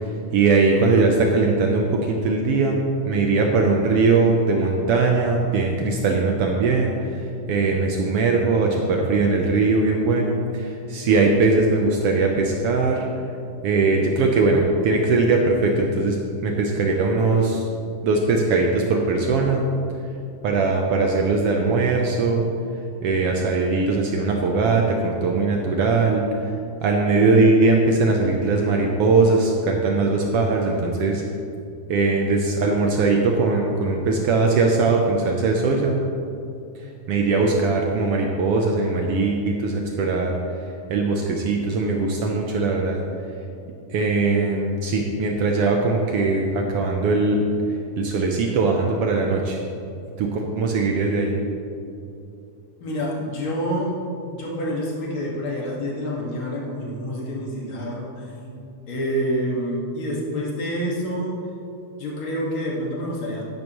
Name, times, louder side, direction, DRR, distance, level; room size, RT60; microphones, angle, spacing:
voice 1, 0.3-6.9 7.5-13.0 13.6-16.2 16.4-17.6 18.0-19.6 20.4-22.4 23.0-26.2 26.8-31.2 31.9-36.0 37.1-40.3 40.9-43.0 43.9-47.4 48.0-49.6 50.2-51.3, right 3 dB, 90° right, 1 dB, 1.3 m, -20 dB
voice 2, 52.8-54.0 54.3-58.6 58.9-61.4 62.0-63.4, equal, 45° left, -3 dB, 2.3 m, -27 dB
12.5 x 10.5 x 3.1 m, 2.6 s
omnidirectional pair, 3.7 m